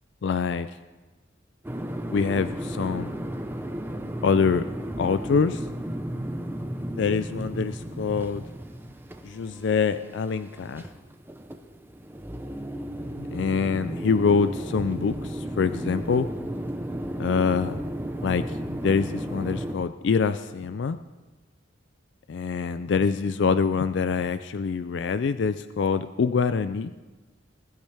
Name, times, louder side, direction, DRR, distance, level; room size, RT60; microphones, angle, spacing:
voice 1, 0.2-0.7 2.1-3.2 4.2-4.6 5.0-5.6 6.9-8.4 9.2-10.9 13.2-16.3 17.2-17.8 18.2-18.5 18.8-21.0 22.3-26.9, left 5 dB, 60° left, 12 dB, 0.4 m, -25 dB
sound 1, 1.6-19.8, equal, 10° right, 0.7 m, -34 dB
21.5 x 12.0 x 3.4 m, 1.2 s
head